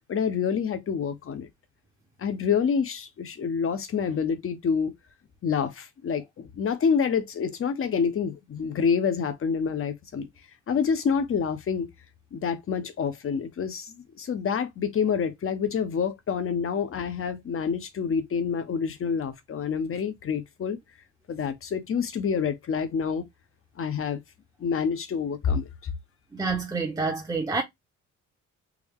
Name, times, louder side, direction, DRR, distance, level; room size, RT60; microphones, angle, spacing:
voice 1, 0.1-1.5 2.2-4.9 5.4-10.3 10.7-11.9 12.3-20.8 21.3-23.2 23.8-24.2 24.6-25.9, left 6 dB, 45° left, 0.9 m, -27 dB
voice 2, 26.3-27.6, right 4 dB, 15° right, 0.8 m, -28 dB
3.5 x 2.2 x 3.6 m
cardioid pair, 90°, 30 cm